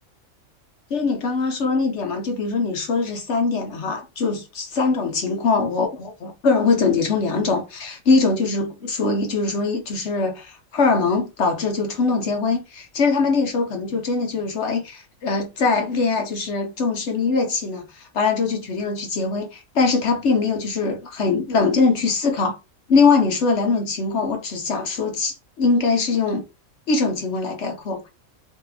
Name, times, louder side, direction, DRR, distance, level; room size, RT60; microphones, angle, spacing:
voice 1, 0.9-22.6 22.9-26.4 26.9-28.0, left 4 dB, 60° left, 1.0 m, -22 dB
3.0 x 2.8 x 3.9 m
omnidirectional pair, 1.4 m